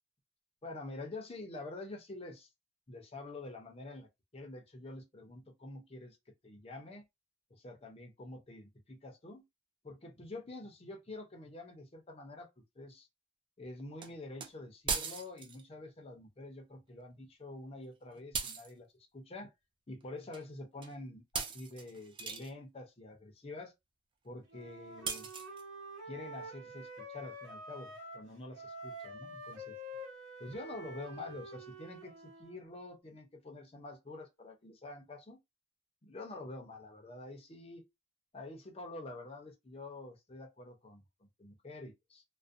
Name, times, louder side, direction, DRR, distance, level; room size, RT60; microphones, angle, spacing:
voice 1, 0.6-2.5 2.9-4.1 4.3-6.2 6.4-7.0 7.5-9.4 9.8-12.5 12.8-13.1 13.6-18.9 19.1-19.5 19.9-23.7 24.2-25.3 26.1-29.8 30.4-35.4 36.0-37.9 38.3-42.2, left 2 dB, 30° left, 0.6 m, -47 dB
sound 1, 14.0-14.1 14.4-14.5 14.9-15.6 18.3-18.7 20.3-20.5 20.8-21.0 21.3-22.5 25.1-25.6, right 5 dB, 25° right, 0.3 m, -38 dB
Wind instrument woodwind instrument, 24.5-28.3 28.5-32.6, equal, 70° right, 1.0 m, -47 dB
2.4 x 2.1 x 2.5 m
head